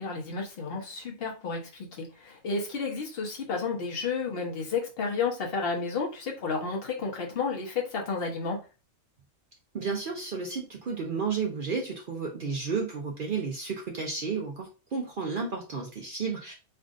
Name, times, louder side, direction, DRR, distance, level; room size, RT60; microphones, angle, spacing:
voice 1, 0.0-8.6, left 4 dB, 45° left, 0 dB, 0.9 m, -31 dB
voice 2, 9.7-16.5, right 5 dB, 70° right, 0 dB, 0.5 m, -32 dB
3.6 x 2.5 x 2.4 m, 0.31 s
omnidirectional pair, 1.6 m